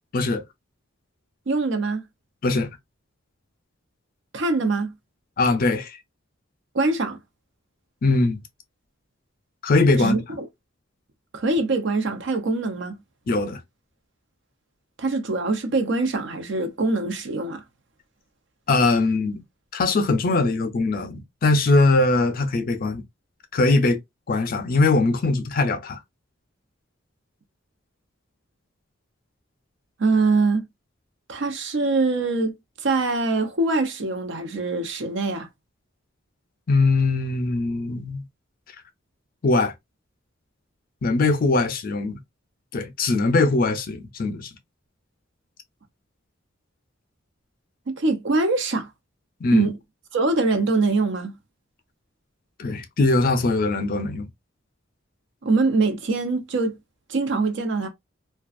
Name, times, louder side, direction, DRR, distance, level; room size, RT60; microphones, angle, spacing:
voice 1, 0.1-0.4 2.4-2.7 5.4-5.9 8.0-8.4 9.6-10.2 13.3-13.6 18.7-19.4 19.7-23.0 23.5-24.0 24.3-26.0 36.7-38.2 39.4-39.7 41.0-42.2 42.7-44.5 49.4-49.7 52.6-54.3, left 3 dB, 45° left, 0.5 m, -21 dB
voice 2, 1.5-2.0 4.3-4.9 6.7-7.2 10.0-10.5 11.3-13.0 15.0-17.6 30.0-30.7 31.3-32.5 32.8-35.5 47.9-48.9 49.5-49.8 50.1-51.3 55.4-56.8 57.1-57.9, right 3 dB, 65° right, 0.6 m, -23 dB
2.4 x 2.3 x 2.3 m
head